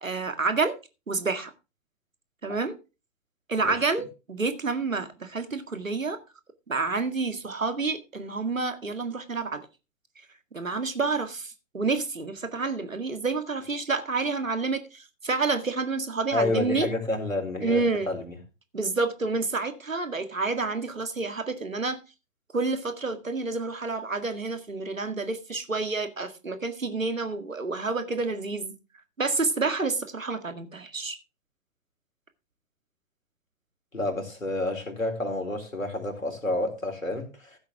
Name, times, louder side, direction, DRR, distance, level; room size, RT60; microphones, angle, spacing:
voice 1, 0.0-0.8 1.1-1.5 2.4-2.7 3.5-6.2 6.7-9.7 10.5-16.9 17.6-18.1 18.7-22.0 22.5-28.7 29.2-31.2, right 3 dB, 80° right, 2.0 m, -29 dB
voice 2, 16.3-18.4 33.9-37.6, left 2 dB, 85° left, 4.3 m, -29 dB
15.5 x 8.1 x 3.5 m
figure-of-eight pair, 120°, 39 cm